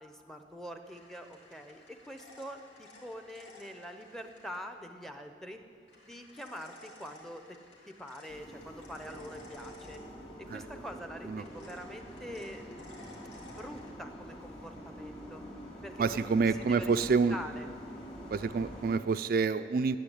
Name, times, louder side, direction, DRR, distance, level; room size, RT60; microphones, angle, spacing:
voice 1, 0.0-5.6 6.0-7.6 7.9-10.0 10.4-13.1 13.6-15.4 15.8-17.0 17.3-17.7, equal, ahead, 7 dB, 0.7 m, -45 dB
sound 1, 0.8-4.6 5.9-10.5 11.4-13.9, left 2 dB, 80° left, 2.6 m, -55 dB
sound 2, 8.3-19.0, equal, 35° left, 2.5 m, -46 dB
voice 2, 16.0-17.4 18.3-20.0, right 5 dB, 50° right, 10 dB, 0.3 m, -28 dB
10.5 x 8.5 x 9.9 m, 2.3 s
head